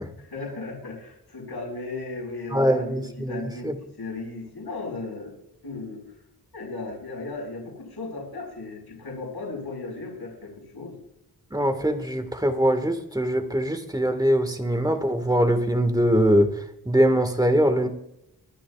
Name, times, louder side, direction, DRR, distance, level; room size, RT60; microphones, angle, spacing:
voice 1, 0.2-5.3 5.6-6.0 6.5-11.0, left 3 dB, 70° left, -2 dB, 5.2 m, -36 dB
voice 2, 2.5-3.7 11.5-17.9, equal, 10° right, 7 dB, 1.8 m, -22 dB
23.0 x 9.7 x 2.5 m, 0.78 s
wide cardioid pair, 75°, 40 cm